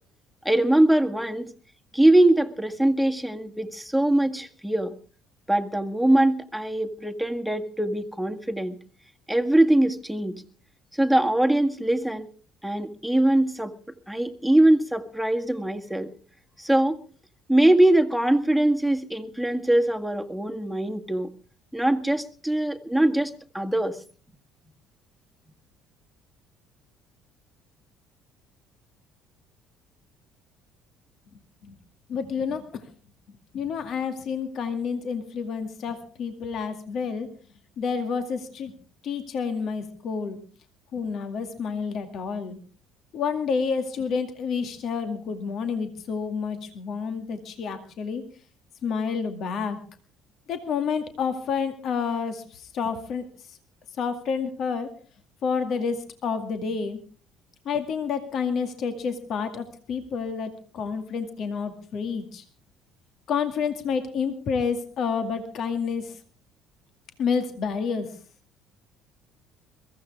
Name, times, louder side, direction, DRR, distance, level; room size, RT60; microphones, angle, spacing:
voice 1, 0.5-1.5 1.9-4.9 5.5-8.8 9.3-10.4 10.9-12.3 12.6-13.7 14.1-16.1 16.6-17.0 17.5-21.3 21.7-24.0, right 1 dB, ahead, 4 dB, 1.9 m, -22 dB
voice 2, 32.1-32.6 33.5-37.3 37.8-38.7 39.0-40.4 40.9-42.6 43.1-48.2 48.8-49.8 50.5-53.2 54.0-54.9 55.4-57.0 57.7-62.4 63.3-66.1 67.2-68.1, left 6 dB, 55° left, 7 dB, 2.2 m, -29 dB
22.5 x 15.5 x 3.6 m, 0.39 s
hypercardioid pair, 55°, 0 cm